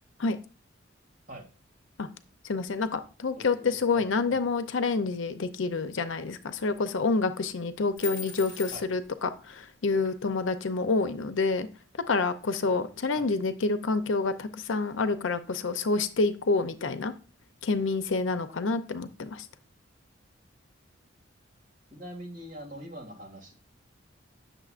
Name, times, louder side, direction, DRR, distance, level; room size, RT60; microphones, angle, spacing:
voice 1, 2.4-11.7 12.1-17.1 17.6-19.5, left 3 dB, 75° left, 11 dB, 0.6 m, -28 dB
voice 2, 3.3-4.4 8.7-8.9 13.1-13.3 21.9-23.5, equal, 45° right, 1 dB, 2.1 m, -43 dB
sound 1, 8.0-9.1 10.0-10.1, left 7 dB, 25° left, 2.1 m, -39 dB
9.0 x 6.6 x 2.4 m, 0.35 s
head